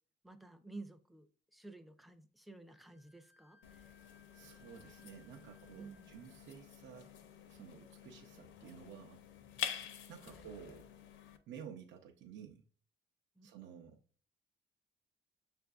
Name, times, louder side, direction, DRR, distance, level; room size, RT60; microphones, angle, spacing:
voice 1, 0.2-3.9 5.7-6.1 10.2-10.5 13.4-13.5 13.8-14.0, right 2 dB, ahead, 0.4 m, -53 dB
Wind instrument woodwind instrument, 2.7-6.4, left 3 dB, 30° right, 0.9 m, -68 dB
sound 1, 3.6-11.4, left 9 dB, 75° left, 0.5 m, -48 dB
voice 2, 4.3-7.1 7.5-9.2 10.1-10.9 11.5-12.6 13.4-14.0, right 8 dB, 75° right, 0.6 m, -52 dB
6.5 x 2.5 x 2.3 m
cardioid pair, 90°, 20 cm